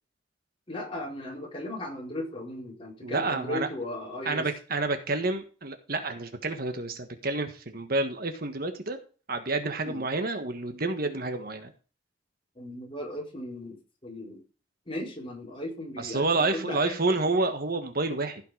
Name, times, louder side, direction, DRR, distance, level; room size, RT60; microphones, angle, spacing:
voice 1, 0.7-4.5 9.8-10.0 12.5-14.4 14.9-17.0, left 1 dB, 30° left, -1 dB, 4.1 m, -37 dB
voice 2, 3.0-3.7 4.2-9.0 9.3-11.7 16.0-18.4, right 3 dB, 50° right, 7 dB, 1.5 m, -29 dB
15.5 x 5.9 x 5.0 m, 0.37 s
head